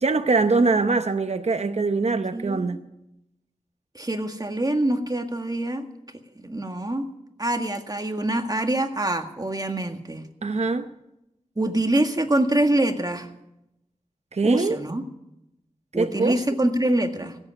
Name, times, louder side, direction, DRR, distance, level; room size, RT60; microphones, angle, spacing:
voice 1, 0.0-2.8 10.4-10.9 14.3-14.8 15.9-16.4, right 3 dB, 55° right, 8 dB, 0.8 m, -23 dB
voice 2, 2.3-2.8 3.9-5.9 6.3-7.1 7.4-10.3 11.6-13.3 14.4-15.0 15.9-17.4, right 1 dB, 30° right, 5 dB, 1.7 m, -25 dB
16.0 x 8.1 x 9.7 m, 0.87 s
wide cardioid pair, 45°, 13 cm